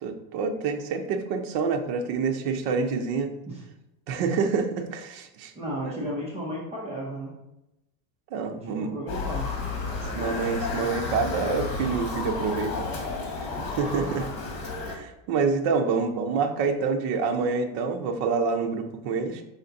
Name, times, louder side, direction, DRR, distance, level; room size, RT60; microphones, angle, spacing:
voice 1, 0.0-3.3 4.1-5.5 5.8-6.0 8.3-8.9 10.1-13.0 13.8-14.3 14.8-19.4, right 5 dB, 50° right, 5 dB, 0.8 m, -27 dB
voice 2, 5.5-7.3 8.5-9.5 13.5-14.1, equal, 15° right, -5 dB, 0.9 m, -34 dB
Motor vehicle (road) / Siren, 9.1-14.9, left 3 dB, 70° left, 1.8 m, -32 dB
5.8 x 4.1 x 4.0 m, 0.91 s
cardioid pair, 175°, 46 cm